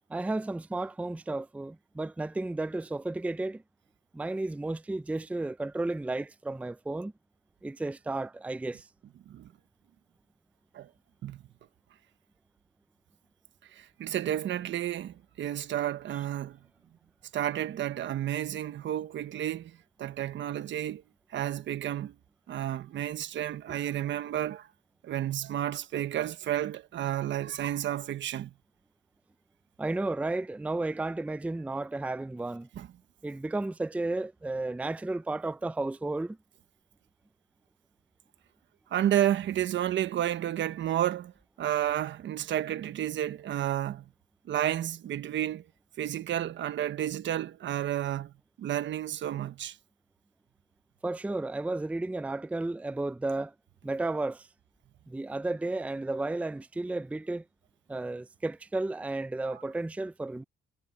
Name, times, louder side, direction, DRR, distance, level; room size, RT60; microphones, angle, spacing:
voice 1, 0.1-3.6 4.1-7.1 7.6-8.9 29.8-32.7 33.2-36.4 51.0-53.5 53.8-54.5 55.1-57.4 57.9-60.4, right 2 dB, 5° right, 0.5 m, -33 dB
voice 2, 13.7-16.6 17.3-21.0 21.3-22.1 22.5-24.7 25.0-28.5 32.8-32.9 38.9-41.3 41.6-44.0 44.5-45.6 46.0-48.3 48.6-49.8, right 11 dB, 70° right, 1.3 m, -31 dB
cardioid pair, 90°, 20 cm